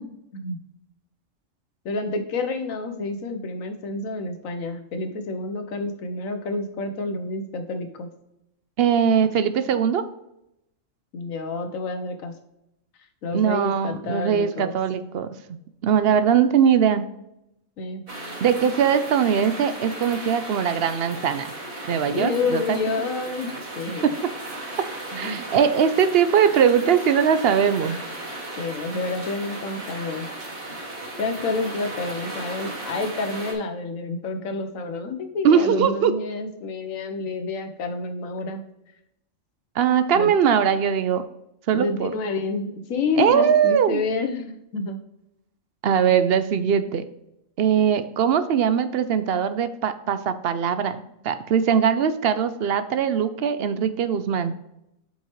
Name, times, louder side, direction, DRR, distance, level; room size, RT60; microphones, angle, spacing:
voice 1, 1.8-8.1 11.1-12.3 13.2-14.8 17.8-18.0 22.1-23.5 23.7-24.1 25.1-25.4 28.6-30.3 31.2-38.6 40.1-40.3 41.7-45.0, left 3 dB, 80° left, 6 dB, 1.3 m, -29 dB
voice 2, 8.8-10.0 13.3-17.0 18.4-21.5 21.9-22.8 24.0-24.1 25.2-28.0 35.4-36.1 39.8-41.2 41.7-42.1 43.2-44.0 45.8-47.1 47.6-54.5, right 7 dB, 60° right, 11 dB, 0.7 m, -21 dB
sound 1, 18.1-33.5, right 1 dB, 40° right, 2.6 m, -36 dB
7.3 x 5.6 x 3.1 m, 0.82 s
omnidirectional pair, 1.4 m